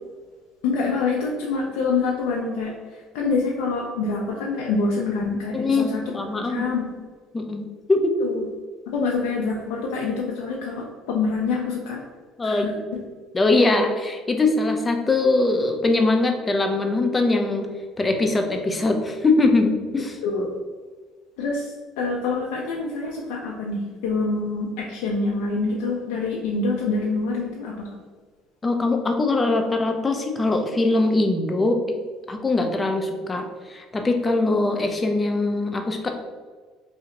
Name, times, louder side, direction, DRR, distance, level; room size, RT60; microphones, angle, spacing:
voice 1, 0.6-7.0 8.2-8.5 8.9-12.0 12.4-13.0 20.2-20.6 21.4-27.9, left 4 dB, 90° left, -2 dB, 0.4 m, -26 dB
voice 2, 5.5-6.6 7.3-8.1 12.4-12.8 13.3-17.7 18.0-20.2 28.6-31.8 32.3-36.1, left 2 dB, 20° left, 4 dB, 0.4 m, -22 dB
2.8 x 2.1 x 3.7 m, 1.5 s
cardioid pair, 105°, 0 cm